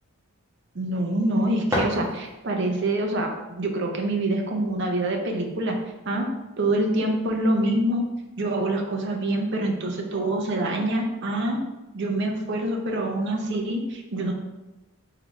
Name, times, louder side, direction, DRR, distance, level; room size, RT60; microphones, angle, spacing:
voice 1, 0.7-5.8 6.1-6.3 6.6-8.0 8.4-11.6 11.9-14.3, right 1 dB, 55° right, 2 dB, 0.6 m, -25 dB
sound 1, 1.2-2.7, equal, 10° right, 1.0 m, -30 dB
3.7 x 3.5 x 3.1 m, 1.1 s
head